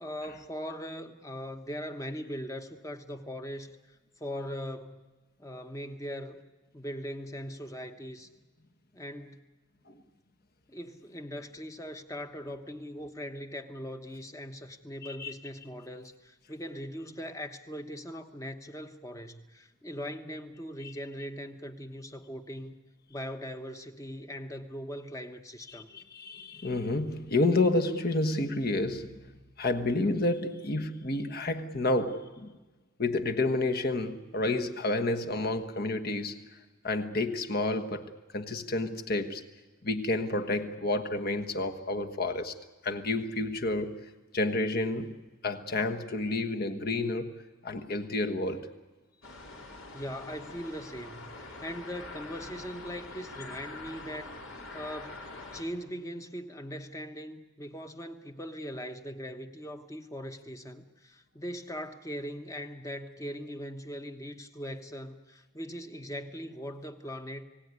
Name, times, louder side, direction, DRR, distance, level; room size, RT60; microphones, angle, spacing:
voice 1, 0.0-5.0 5.4-6.5 6.7-8.3 8.9-9.5 10.7-22.8 23.1-25.9 49.9-54.4 54.7-67.4, equal, 15° left, 1.2 m, -40 dB
voice 2, 25.7-29.3 29.6-32.5 33.0-36.5 36.8-39.4 39.8-42.5 42.8-44.0 44.3-48.7, left 2 dB, 45° left, 1.4 m, -30 dB
sound 1, 49.2-55.6, left 3 dB, 70° left, 4.3 m, -45 dB
29.5 x 18.0 x 9.7 m
head